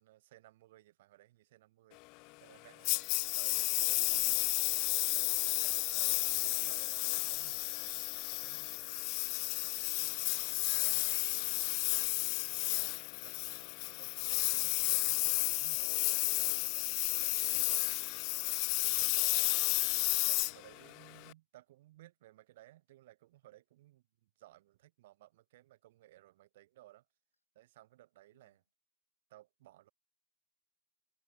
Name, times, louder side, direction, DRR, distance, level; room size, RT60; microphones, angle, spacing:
voice 1, 0.0-2.0 2.4-2.9 3.3-4.4 4.9-5.3 5.6-9.0 12.5-18.4 18.8-19.6 20.2-27.1 27.5-28.6 29.3-29.9, right 15 dB, 55° right, 4.1 m, -60 dB
Engine, 2.8-21.3, left 29 dB, 45° left, 0.3 m, -32 dB
voice 2, 8.8-9.9 10.4-12.9 28.3-28.6, left 2 dB, 85° left, 6.7 m, -67 dB
figure-of-eight pair, 90°, 0 cm